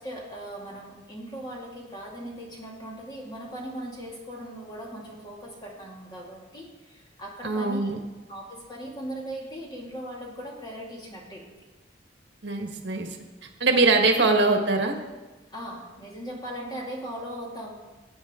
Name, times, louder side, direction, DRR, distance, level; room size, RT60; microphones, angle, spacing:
voice 1, 0.0-7.9 8.3-11.5 15.5-17.7, right 1 dB, 25° left, -2 dB, 2.3 m, -39 dB
voice 2, 7.4-8.0 12.4-13.1 13.6-14.9, right 3 dB, 75° right, 3 dB, 1.4 m, -22 dB
18.0 x 8.5 x 3.7 m, 1.2 s
head